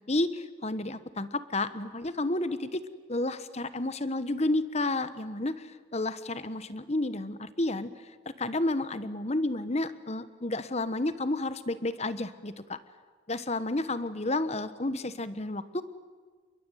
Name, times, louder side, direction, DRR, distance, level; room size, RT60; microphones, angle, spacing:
voice 1, 0.1-2.8 3.1-7.9 8.2-12.8 13.3-15.8, left 2 dB, 35° left, 13 dB, 1.2 m, -31 dB
28.5 x 22.5 x 9.2 m, 1.5 s
head